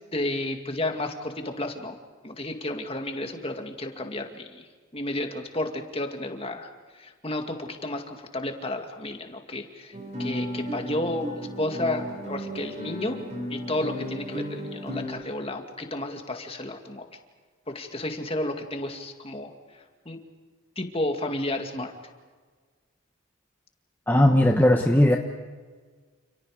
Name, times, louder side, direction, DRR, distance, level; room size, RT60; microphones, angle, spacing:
voice 1, 0.1-2.0 2.2-13.2 13.5-17.1 17.7-20.2 20.8-21.9, left 1 dB, 25° left, 4 dB, 2.3 m, -32 dB
Guitar, 9.9-15.1, equal, 35° right, 6.7 m, -34 dB
voice 2, 24.1-25.2, left 1 dB, 10° left, 1 dB, 1.2 m, -18 dB
29.5 x 29.5 x 5.0 m, 1.5 s
head